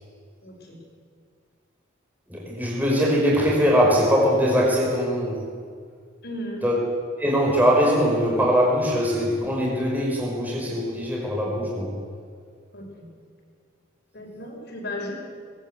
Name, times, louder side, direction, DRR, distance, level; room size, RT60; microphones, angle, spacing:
voice 1, 0.4-0.8 6.2-6.6 12.7-13.1 14.1-15.1, left 1 dB, 55° left, 0 dB, 5.8 m, -35 dB
voice 2, 2.3-5.5 6.6-6.8 7.2-11.9, equal, 10° right, -3 dB, 5.2 m, -21 dB
21.0 x 20.5 x 8.2 m, 2.1 s
head